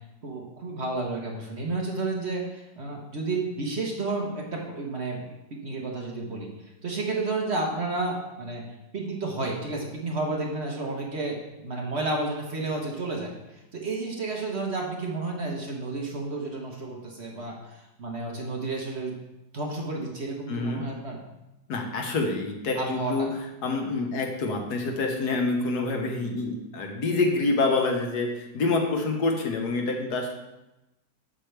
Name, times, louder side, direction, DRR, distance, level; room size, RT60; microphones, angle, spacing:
voice 1, 0.2-8.6 8.9-19.2 19.5-21.2 22.7-23.3, right 3 dB, 45° right, -1 dB, 1.1 m, -31 dB
voice 2, 20.5-20.8 21.7-23.3 23.6-30.3, left 3 dB, 65° left, 2 dB, 1.6 m, -27 dB
7.8 x 6.4 x 3.3 m, 0.95 s
omnidirectional pair, 1.9 m